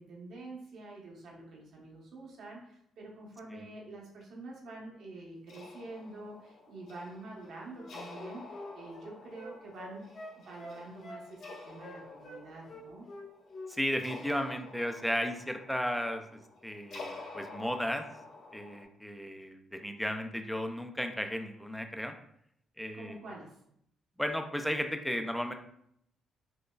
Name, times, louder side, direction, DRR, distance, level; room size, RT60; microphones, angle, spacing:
voice 1, 0.0-10.1 10.4-13.1 22.9-23.6, right 2 dB, 70° right, -2 dB, 1.1 m, -47 dB
sound 1, 5.5-18.8, left 3 dB, 80° left, 1.4 m, -50 dB
Wind instrument woodwind instrument, 7.7-12.4 12.7-13.7 14.0-14.2, left 1 dB, 55° left, 1.1 m, -46 dB
voice 2, 13.7-18.1 18.5-22.1 22.8-23.2 24.2-25.5, equal, ahead, 5 dB, 0.4 m, -34 dB
4.9 x 2.2 x 2.3 m, 0.71 s
cardioid pair, 90°, 0 cm